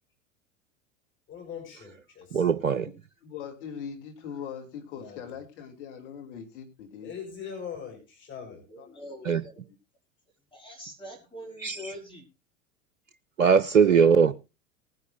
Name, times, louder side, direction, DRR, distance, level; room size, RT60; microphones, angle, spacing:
voice 1, 1.3-2.8 4.9-5.2 7.0-8.6 13.8-14.3, left 7 dB, 30° left, 5.0 m, -42 dB
voice 2, 2.3-2.9 9.3-9.4 11.6-11.9 13.4-14.3, right 6 dB, 90° right, 0.6 m, -21 dB
voice 3, 3.2-7.1 8.8-9.0, left 7 dB, 60° left, 3.0 m, -41 dB
voice 4, 8.7-9.6 10.5-12.3, equal, 15° left, 4.7 m, -44 dB
19.5 x 10.5 x 2.6 m
figure-of-eight pair, 85°, 39 cm